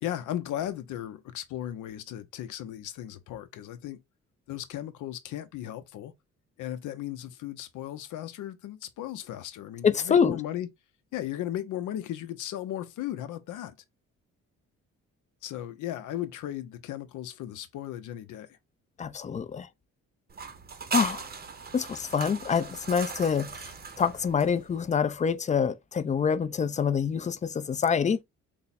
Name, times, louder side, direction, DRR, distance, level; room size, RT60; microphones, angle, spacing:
voice 1, 0.0-4.0 4.5-6.1 6.6-10.7 11.1-13.7 15.4-18.6, left 12 dB, 80° left, 0.6 m, -36 dB
voice 2, 9.8-10.4 19.0-19.7 20.9-21.2 21.7-23.6 24.0-28.2, left 6 dB, 25° left, 0.4 m, -26 dB
sound 1, 20.3-24.9, right 5 dB, 30° right, 0.7 m, -38 dB
3.4 x 2.1 x 4.1 m
cardioid pair, 90°, 30 cm